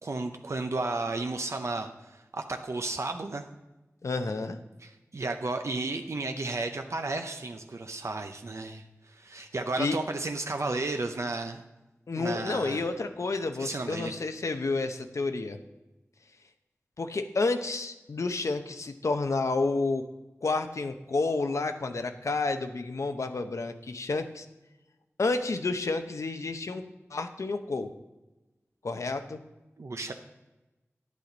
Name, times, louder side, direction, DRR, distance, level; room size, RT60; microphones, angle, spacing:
voice 1, 0.0-3.5 4.8-11.6 12.1-12.9 13.6-14.1 29.8-30.1, right 3 dB, 70° right, 5 dB, 0.6 m, -33 dB
voice 2, 4.0-4.6 9.8-10.0 12.1-15.6 17.0-20.0 20.4-24.5 25.2-26.8 27.1-27.9 28.8-29.4, left 3 dB, 85° left, 7 dB, 0.7 m, -30 dB
10.0 x 8.3 x 3.9 m, 1.1 s
wide cardioid pair, 60°, 5 cm